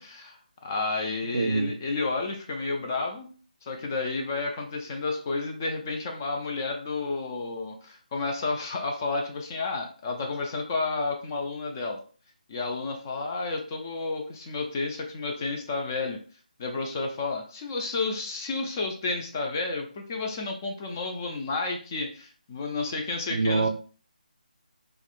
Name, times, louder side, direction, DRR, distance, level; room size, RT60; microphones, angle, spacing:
voice 1, 0.0-3.3 3.6-12.0 12.5-16.2 16.6-23.7, left 3 dB, 20° left, 3 dB, 0.3 m, -31 dB
voice 2, 1.3-1.7 23.3-23.7, right 3 dB, 55° right, 7 dB, 0.3 m, -24 dB
3.4 x 2.1 x 2.3 m, 0.39 s
figure-of-eight pair, 155°, 5 cm